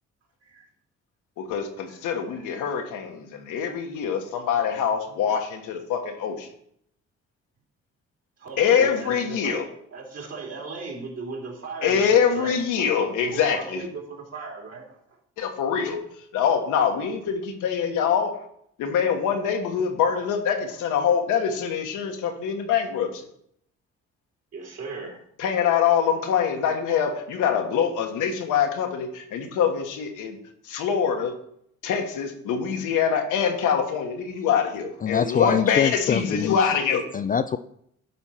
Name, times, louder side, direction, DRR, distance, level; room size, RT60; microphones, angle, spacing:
voice 1, 1.4-6.5 8.6-9.7 11.8-13.8 15.4-16.0 16.3-18.4 18.8-23.3 25.4-30.4 30.6-31.3 31.8-37.0, left 7 dB, 90° left, 1.5 m, -24 dB
voice 2, 8.4-9.6 9.9-12.6 13.0-15.0 24.5-25.2, right 4 dB, 55° right, 2.9 m, -37 dB
voice 3, 35.0-36.6 37.1-37.6, left 7 dB, 30° left, 0.3 m, -24 dB
10.0 x 4.4 x 5.7 m
cardioid pair, 90°, 30 cm